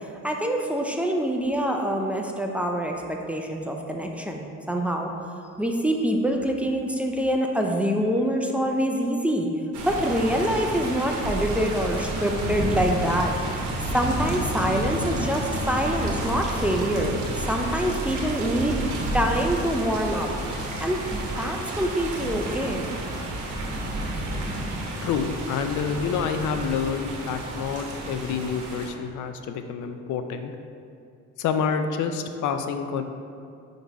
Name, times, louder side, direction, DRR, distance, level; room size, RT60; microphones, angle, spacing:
voice 1, 0.2-5.1 5.6-9.5 9.9-13.3 13.9-20.3 20.8-22.8, equal, 5° right, 1 dB, 0.5 m, -25 dB
sound 1, 9.7-28.9, right 1 dB, 85° right, 1.1 m, -30 dB
voice 2, 25.0-30.5 31.4-33.0, left 6 dB, 75° left, 7 dB, 0.5 m, -28 dB
5.3 x 3.9 x 4.6 m, 2.4 s
cardioid pair, 90°, 30 cm